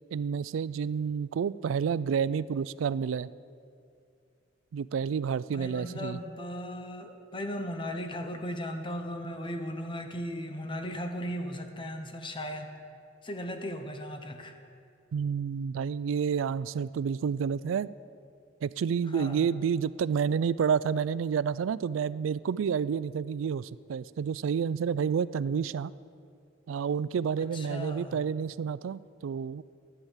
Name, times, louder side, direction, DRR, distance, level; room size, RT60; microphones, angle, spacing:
voice 1, 0.1-3.3 4.7-6.2 15.1-17.9 18.6-25.9 26.7-29.6, right 7 dB, 80° right, 19 dB, 0.3 m, -29 dB
voice 2, 5.5-12.8 13.2-14.5 19.1-19.5 27.5-28.2, equal, 25° left, 5 dB, 0.8 m, -37 dB
11.0 x 10.0 x 7.2 m, 2.4 s
head